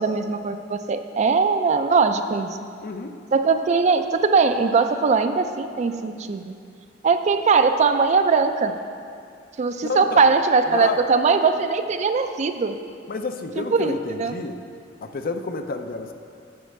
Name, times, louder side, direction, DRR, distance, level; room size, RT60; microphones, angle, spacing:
voice 1, 0.0-2.6 3.3-6.5 7.0-8.8 9.6-12.8 13.6-14.3, right 4 dB, 40° right, 8 dB, 0.3 m, -20 dB
voice 2, 2.8-3.2 9.8-10.3 10.7-11.0 13.1-14.6 15.0-16.1, left 3 dB, 55° left, 7 dB, 0.5 m, -29 dB
8.0 x 4.4 x 6.5 m, 2.3 s
head